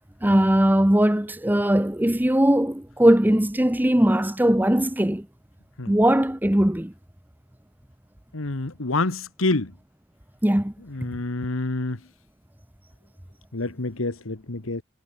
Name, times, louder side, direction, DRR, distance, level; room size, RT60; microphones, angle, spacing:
voice 1, 0.2-5.3 5.9-6.9 10.4-10.7, right 1 dB, 10° right, 0.8 m, -20 dB
voice 2, 8.3-9.7 10.9-12.0 13.5-14.8, left 2 dB, 80° left, 1.5 m, -27 dB
head